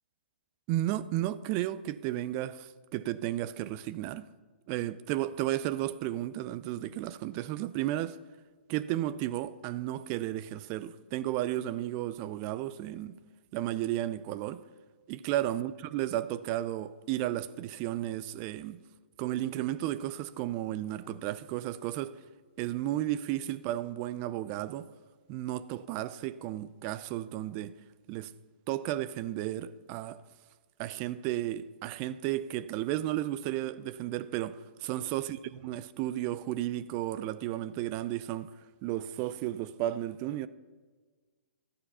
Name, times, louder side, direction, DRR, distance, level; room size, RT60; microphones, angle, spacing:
voice 1, 0.7-4.3 4.7-8.2 8.7-13.2 13.5-14.6 15.1-18.8 19.2-22.2 22.6-24.9 25.3-27.7 28.1-28.3 28.7-30.2 30.8-38.5 38.8-40.5, right 14 dB, 35° right, 0.5 m, -33 dB
13.0 x 9.7 x 5.6 m
figure-of-eight pair, 125°, 6 cm